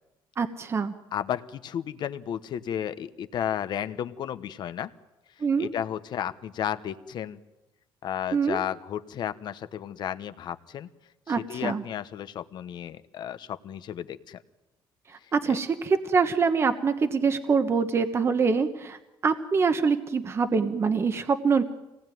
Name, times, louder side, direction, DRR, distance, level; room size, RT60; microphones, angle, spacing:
voice 1, 0.4-0.9 5.4-5.7 8.3-8.6 11.3-11.8 15.3-19.0 19.2-21.6, right 5 dB, 30° right, 9 dB, 1.2 m, -24 dB
voice 2, 1.1-4.9 5.6-7.4 8.0-10.9 11.3-14.4 15.5-15.6, left 10 dB, 55° left, 12 dB, 1.1 m, -33 dB
25.5 x 19.0 x 9.3 m, 1.0 s
cardioid pair, 140°, 9 cm